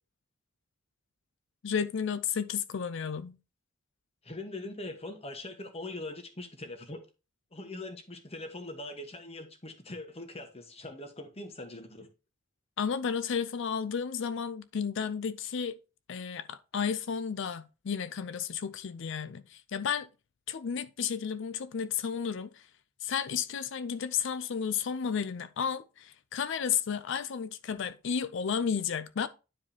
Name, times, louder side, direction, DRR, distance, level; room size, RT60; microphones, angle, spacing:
voice 1, 1.6-3.4 12.8-15.8 16.1-20.1 20.5-22.7 23.0-29.3, left 7 dB, 65° left, 0.4 m, -32 dB
voice 2, 4.2-7.1 7.5-12.1, left 2 dB, 30° left, 1.2 m, -42 dB
10.0 x 4.9 x 2.8 m
head